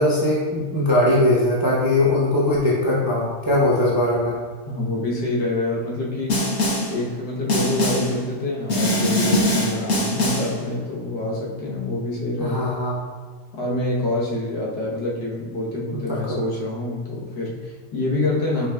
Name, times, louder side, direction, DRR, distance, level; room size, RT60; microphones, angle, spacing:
voice 1, 0.0-4.4 12.4-13.0 16.1-16.4, left 1 dB, 25° right, -6 dB, 0.4 m, -20 dB
voice 2, 4.7-12.7 13.5-18.7, left 2 dB, 85° left, -3 dB, 1.6 m, -26 dB
Snare drum, 6.3-7.0 7.5-8.2 8.7-10.6, left 1 dB, 65° left, 1.4 m, -22 dB
5.2 x 4.5 x 2.2 m, 1.5 s
omnidirectional pair, 1.8 m